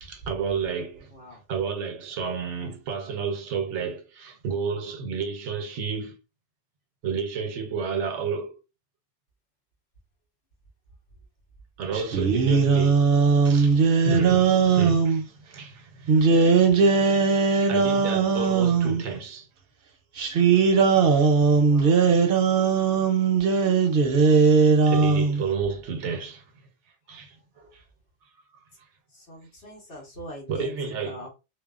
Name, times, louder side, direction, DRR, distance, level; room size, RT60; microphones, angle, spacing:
voice 1, 0.0-1.1 1.5-6.2 7.0-8.6 11.8-13.0 13.4-17.1 17.6-19.5 24.9-26.4 27.1-27.8 30.5-31.3, right 5 dB, 85° right, 0.9 m, -31 dB
sound 1, 11.9-15.2 16.1-19.0 20.2-25.4, right 5 dB, 60° right, 0.7 m, -19 dB
voice 2, 21.7-22.0 29.3-30.7 31.0-31.3, equal, 60° left, 1.4 m, -41 dB
2.8 x 2.1 x 2.3 m
omnidirectional pair, 1.2 m